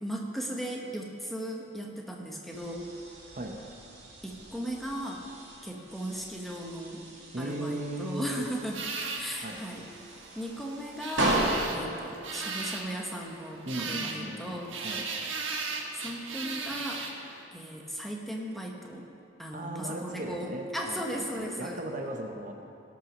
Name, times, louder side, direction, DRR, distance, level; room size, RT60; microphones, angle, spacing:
voice 1, 0.0-2.9 4.2-5.2 5.6-7.0 7.4-8.8 9.2-9.8 10.3-14.7 15.9-17.1 17.5-19.1 19.4-21.8, equal, ahead, -1 dB, 1.1 m, -37 dB
sound 1, 2.5-13.4, right 1 dB, 70° right, 2.1 m, -36 dB
voice 2, 7.3-8.5 9.4-9.6 13.6-15.1 19.5-22.5, right 1 dB, 40° right, 3 dB, 0.8 m, -37 dB
sound 2, 8.7-17.5, right 4 dB, 90° right, 1.4 m, -37 dB
17.5 x 6.1 x 6.1 m, 2.6 s
head